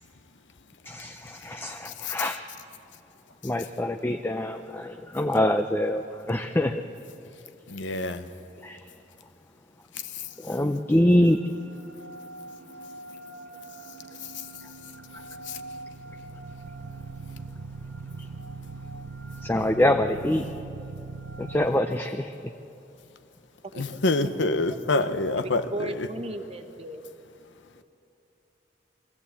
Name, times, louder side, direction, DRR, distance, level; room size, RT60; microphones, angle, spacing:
voice 1, 0.8-2.5 3.4-6.8 8.6-8.9 10.4-11.4 14.6-14.7 15.1-15.2 17.7-17.8 18.2-18.5 18.9-19.0 19.3-20.5 21.4-22.5, left 1 dB, 10° left, 6 dB, 0.5 m, -25 dB
voice 2, 7.7-8.3 9.9-10.3 14.1-14.5 15.4-15.6 23.7-26.1, left 2 dB, 80° left, 10 dB, 1.0 m, -27 dB
sound 1, 10.4-21.7, right 3 dB, 80° right, 0.6 m, -41 dB
voice 3, 25.4-27.0, right 1 dB, 35° right, 7 dB, 1.2 m, -35 dB
22.5 x 15.5 x 8.4 m, 2.8 s
head